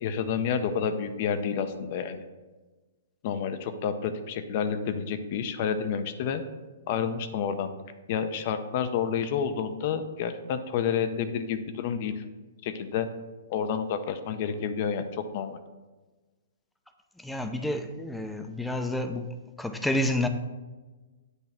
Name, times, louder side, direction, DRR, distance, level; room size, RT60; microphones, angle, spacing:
voice 1, 0.0-2.2 3.2-6.4 6.9-7.7 8.1-12.2 12.6-13.1 13.5-15.6, left 7 dB, 50° left, 10 dB, 0.6 m, -29 dB
voice 2, 17.2-19.3 19.6-20.3, left 1 dB, 5° left, 6 dB, 0.5 m, -29 dB
8.1 x 3.1 x 5.8 m, 1.2 s
hypercardioid pair, 140°, 0 cm